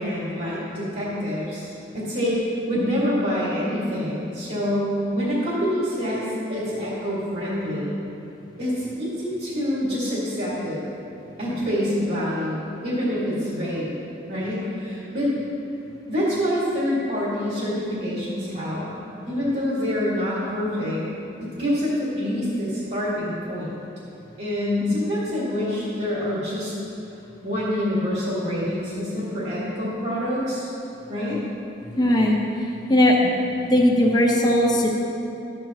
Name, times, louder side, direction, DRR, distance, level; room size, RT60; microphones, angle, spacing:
voice 1, 0.0-8.0 8.6-10.8 11.4-13.9 14.3-15.3 16.1-18.9 19.3-21.0 21.4-23.7 24.4-26.7 27.4-30.7 31.1-31.4, equal, 60° right, -8 dB, 2.2 m, -26 dB
voice 2, 32.0-32.4 32.9-33.3 33.7-34.9, left 1 dB, 20° left, -1 dB, 0.8 m, -18 dB
12.5 x 8.7 x 3.0 m, 2.8 s
head